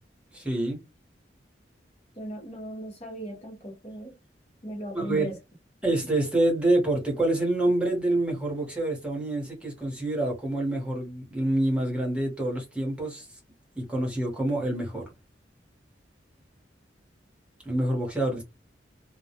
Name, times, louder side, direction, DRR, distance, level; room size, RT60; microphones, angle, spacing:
voice 1, 0.3-0.8 4.9-5.3 5.8-13.3 13.8-15.0 17.6-18.4, right 1 dB, 5° right, 0.9 m, -27 dB
voice 2, 2.2-4.1 4.6-5.3, equal, 35° left, 0.7 m, -37 dB
2.1 x 2.1 x 2.8 m
head